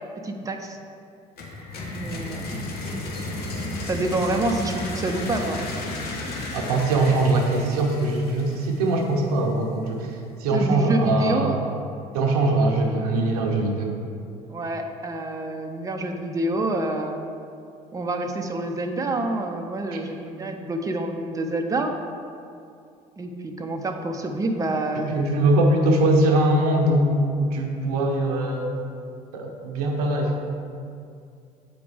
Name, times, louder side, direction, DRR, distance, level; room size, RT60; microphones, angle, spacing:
voice 1, 0.2-0.8 1.9-2.5 3.9-5.6 10.5-11.6 14.5-17.2 17.9-21.9 23.2-25.1, right 2 dB, 15° right, 3 dB, 0.6 m, -27 dB
sound 1, 1.4-9.1, left 2 dB, 55° left, 1.1 m, -33 dB
voice 2, 6.5-10.1 10.4-11.6 12.1-14.0 24.9-28.7 29.3-30.5, right 2 dB, 80° right, 2 dB, 0.8 m, -22 dB
7.8 x 5.0 x 3.4 m, 2.5 s
hypercardioid pair, 65°, 19 cm